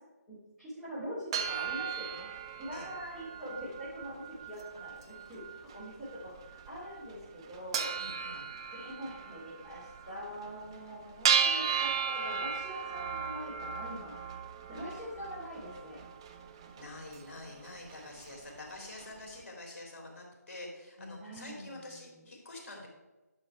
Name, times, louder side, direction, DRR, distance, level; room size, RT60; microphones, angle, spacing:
voice 1, 0.3-2.3 2.6-7.9 8.7-14.1 14.7-16.0 21.0-22.0, equal, ahead, -16 dB, 2.9 m, -43 dB
sound 1, 1.3-19.3, right 7 dB, 15° right, 0.4 m, -36 dB
voice 2, 7.9-8.5 16.8-22.9, left 2 dB, 45° left, 0 dB, 3.3 m, -47 dB
11.0 x 5.7 x 4.6 m, 1.1 s
figure-of-eight pair, 150°, 9 cm